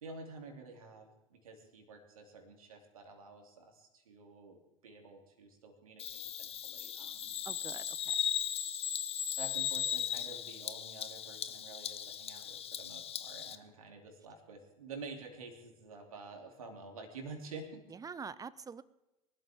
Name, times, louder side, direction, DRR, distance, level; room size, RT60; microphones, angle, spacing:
voice 1, 0.0-7.3 9.4-17.8, right 3 dB, 75° right, 3 dB, 2.9 m, -49 dB
Bird vocalization bird call bird song, 6.0-13.6, left 9 dB, 35° left, 1.1 m, -37 dB
voice 2, 7.4-8.1 17.9-18.8, right 5 dB, 20° right, 18 dB, 0.7 m, -45 dB
23.5 x 13.0 x 3.6 m, 0.99 s
figure-of-eight pair, 75°, 18 cm